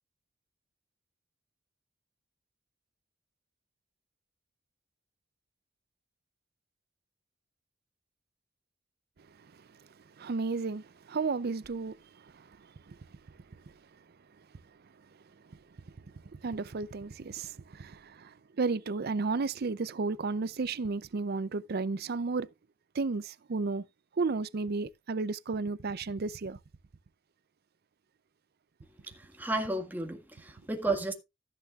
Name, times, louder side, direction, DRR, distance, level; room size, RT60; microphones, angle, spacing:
voice 1, 10.2-12.0 12.2-12.4 12.9-13.0 16.3-22.5 22.9-23.8 24.2-26.6, right 4 dB, 55° right, 0.5 m, -33 dB
voice 2, 29.1-31.1, right 2 dB, 10° right, 1.8 m, -33 dB
14.0 x 9.9 x 2.4 m
head